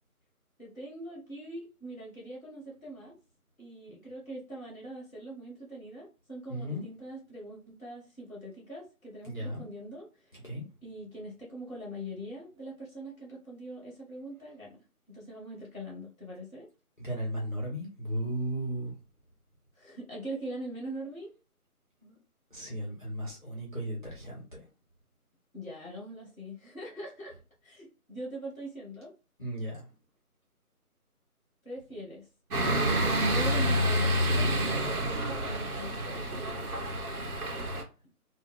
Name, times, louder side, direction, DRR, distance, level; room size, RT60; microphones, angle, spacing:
voice 1, 0.6-3.1 3.6-10.4 10.8-14.8 15.1-16.7 19.7-21.3 25.5-27.3 27.6-29.1 31.6-32.3 33.0-34.6 34.8-36.3, right 1 dB, ahead, 0.8 m, -42 dB
voice 2, 6.5-6.8 9.2-9.7 10.3-10.6 17.0-18.9 22.0-22.2 22.5-24.6 29.4-29.9, right 1 dB, 35° left, 0.7 m, -35 dB
sound 1, 32.5-37.8, equal, 70° right, 0.9 m, -28 dB
2.3 x 2.1 x 3.7 m
figure-of-eight pair, 175°, 45 cm